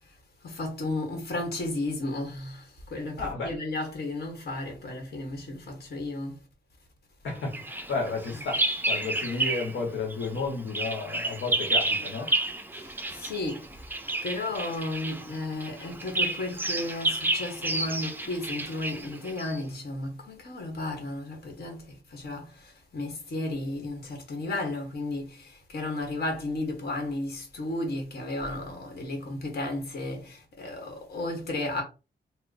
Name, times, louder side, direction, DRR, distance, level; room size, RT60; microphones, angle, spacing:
voice 1, 0.4-6.4 12.7-13.7 14.2-31.8, left 2 dB, 60° left, 1.4 m, -34 dB
voice 2, 3.2-3.6 7.2-12.3, left 4 dB, 90° left, 1.1 m, -32 dB
Bird vocalization bird call bird song, 7.5-9.8 10.1-19.6, right 2 dB, 10° right, 0.4 m, -31 dB
3.0 x 2.2 x 3.8 m
wide cardioid pair, 115°, 19 cm